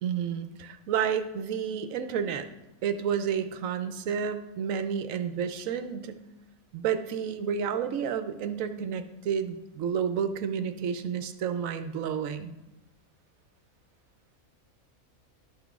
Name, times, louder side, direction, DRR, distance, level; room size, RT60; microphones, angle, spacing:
voice 1, 0.0-2.5 2.8-6.2 6.7-12.5, right 7 dB, 70° right, 10 dB, 1.0 m, -30 dB
12.0 x 5.8 x 3.6 m, 0.97 s
omnidirectional pair, 1.5 m